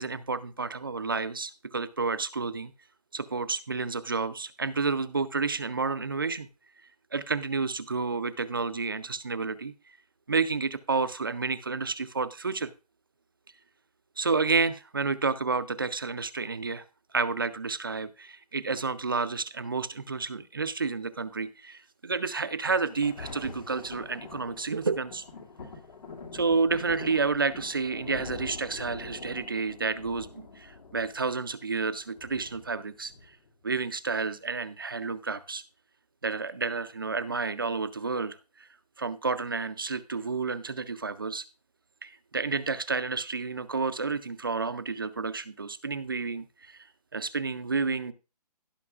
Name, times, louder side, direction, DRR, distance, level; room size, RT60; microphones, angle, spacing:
voice 1, 0.0-2.7 3.1-6.5 7.1-9.7 10.3-12.7 14.2-16.8 17.1-25.2 26.3-33.1 33.6-35.6 36.2-38.7 39.0-41.4 42.0-46.8 47.1-48.1, right 4 dB, 35° right, 15 dB, 0.4 m, -30 dB
Thunder, 22.7-33.7 34.3-34.4, left 4 dB, 90° left, 2.3 m, -45 dB
17.0 x 5.8 x 2.4 m, 0.31 s
hypercardioid pair, 175°, 21 cm